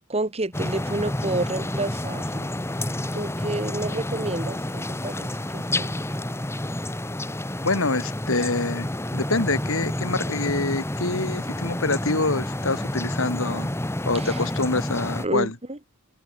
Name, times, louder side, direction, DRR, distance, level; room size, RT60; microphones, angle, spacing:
voice 1, 0.1-2.5 3.1-6.1 14.2-14.4 15.2-15.8, right 2 dB, 30° right, 1.7 m, -30 dB
sound 1, 0.5-15.3, left 1 dB, 10° left, 1.5 m, -29 dB
voice 2, 7.6-13.7 14.1-15.5, left 3 dB, 65° left, 2.5 m, -26 dB
head